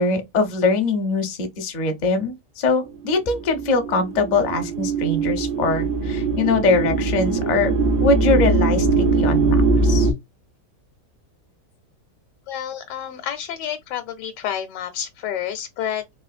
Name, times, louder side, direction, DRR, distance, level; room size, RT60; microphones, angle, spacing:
voice 1, 0.0-7.7 8.0-10.1, left 3 dB, 50° left, 0.5 m, -22 dB
sound 1, 2.9-10.1, right 3 dB, 75° right, 1.3 m, -21 dB
voice 2, 12.5-16.0, left 10 dB, 80° left, 1.2 m, -29 dB
3.6 x 2.7 x 2.4 m
omnidirectional pair, 1.9 m